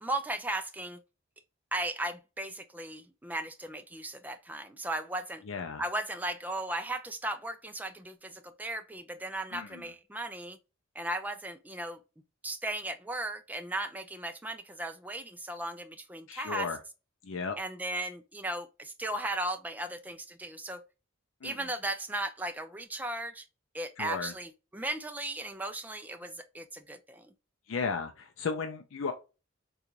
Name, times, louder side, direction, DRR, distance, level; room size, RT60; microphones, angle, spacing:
voice 1, 0.0-1.0 1.7-5.4 5.8-10.6 11.0-12.0 12.4-16.7 17.6-20.8 21.4-23.5 23.7-27.3, right 1 dB, 10° right, 0.3 m, -36 dB
voice 2, 5.5-5.8 9.5-9.8 16.3-16.8 17.2-17.6 21.4-21.7 24.0-24.3 27.7-29.1, left 5 dB, 75° left, 0.5 m, -35 dB
3.8 x 2.3 x 2.9 m
head